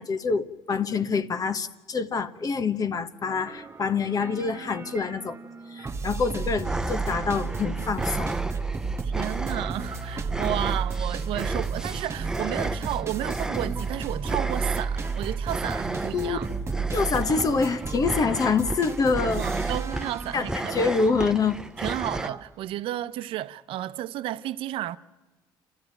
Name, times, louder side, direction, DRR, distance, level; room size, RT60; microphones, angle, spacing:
voice 1, 0.0-5.4 5.7-8.4 16.1-16.4 16.9-19.4 20.3-21.6, left 5 dB, 40° left, 1.1 m, -26 dB
sound 1, 3.3-22.4, right 5 dB, 30° right, 1.2 m, -33 dB
sound 2, 6.6-22.3, right 1 dB, 5° right, 0.8 m, -34 dB
voice 2, 9.0-16.5 19.4-20.8 21.8-25.0, right 13 dB, 75° right, 0.7 m, -32 dB
28.5 x 13.5 x 9.0 m
supercardioid pair, 85°, 9 cm